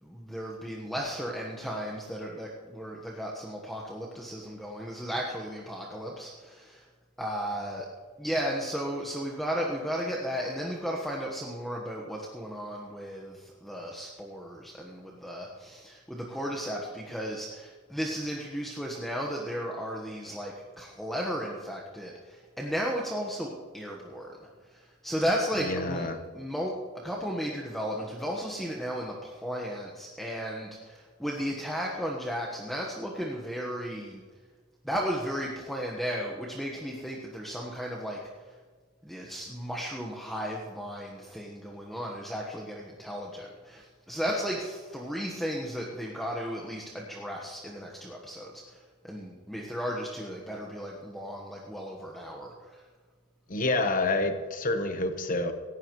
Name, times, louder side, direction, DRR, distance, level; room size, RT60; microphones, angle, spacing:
voice 1, 0.0-6.9 7.2-7.9 8.2-24.3 24.7-26.1 26.3-26.7 27.0-34.2 34.8-38.2 39.0-52.8, equal, ahead, -2 dB, 1.4 m, -34 dB
voice 2, 25.6-26.2 53.5-55.5, left 2 dB, 40° left, 7 dB, 1.2 m, -28 dB
18.0 x 15.5 x 3.2 m, 1.5 s
head